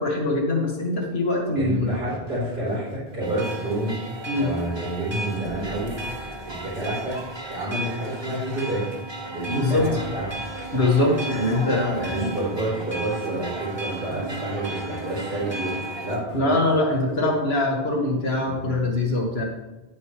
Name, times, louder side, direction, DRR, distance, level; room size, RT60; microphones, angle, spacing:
voice 1, 0.0-2.0 4.3-4.5 9.5-9.9 10.7-12.3 16.3-19.4, left 2 dB, 80° left, 0 dB, 2.1 m, -23 dB
voice 2, 1.6-3.9 4.4-6.0 6.4-7.2 7.5-8.8 9.3-10.3 12.0-15.7 16.0-16.5, right 1 dB, 75° right, -11 dB, 4.3 m, -29 dB
sound 1, 1.7-3.9 5.4-8.1 9.7-12.6 14.1-17.5 18.5-18.8, right 1 dB, 60° right, 1.7 m, -42 dB
sound 2, 3.2-16.2, right 2 dB, 25° right, 1.3 m, -34 dB
10.0 x 9.4 x 3.2 m, 1.1 s
omnidirectional pair, 1.0 m